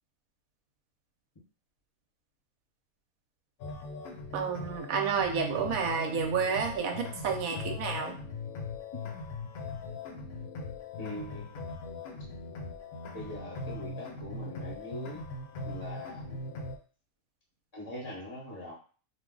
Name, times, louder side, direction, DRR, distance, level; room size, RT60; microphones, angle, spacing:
sound 1, 3.6-16.8, left 3 dB, 80° left, 1.1 m, -40 dB
voice 1, 4.3-8.2, right 6 dB, 75° right, 4 dB, 1.0 m, -30 dB
voice 2, 11.0-11.6 13.1-15.2 15.6-16.4 17.7-18.7, left 1 dB, 25° left, -4 dB, 0.6 m, -42 dB
2.5 x 2.0 x 3.6 m, 0.39 s
omnidirectional pair, 1.6 m